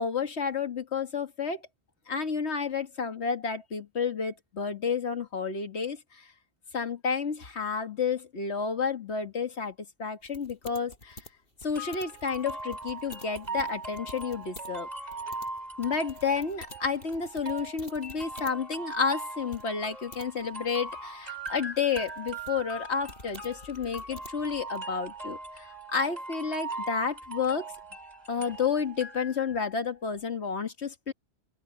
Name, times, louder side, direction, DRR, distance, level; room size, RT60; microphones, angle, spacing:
voice 1, 0.0-1.6 2.1-6.0 6.7-11.2 11.6-14.9 15.8-27.7 28.3-31.1, left 5 dB, 80° left, 2.0 m, -31 dB
sound 1, 10.2-14.7 15.0-18.6 18.9-19.0 19.5-20.3 20.9-24.8, left 1 dB, 60° left, 6.3 m, -49 dB
sound 2, 11.7-29.7, right 2 dB, 35° right, 5.5 m, -40 dB
open air
omnidirectional pair, 1.1 m